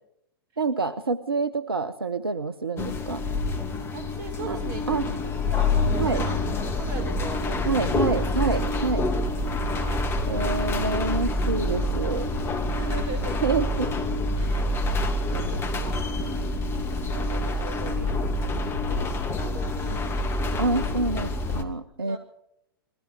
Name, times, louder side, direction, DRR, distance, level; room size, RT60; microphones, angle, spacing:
voice 1, 0.6-3.2 4.4-4.6 4.9-5.1 6.0-6.2 7.7-9.1 10.3-12.3 13.4-13.9 20.6-22.2, right 3 dB, 75° right, 14 dB, 1.0 m, -27 dB
sound 1, 2.8-21.6, left 2 dB, 20° left, 2.5 m, -27 dB
voice 2, 3.9-8.2 8.6-8.8 9.7-10.2 10.5-10.9 12.8-13.4 13.8-13.9 14.3-16.1 16.9-18.3 18.9-20.6 21.9-22.2, right 2 dB, 40° right, 6 dB, 6.7 m, -40 dB
29.0 x 21.5 x 4.9 m, 0.78 s
figure-of-eight pair, 105°, 12 cm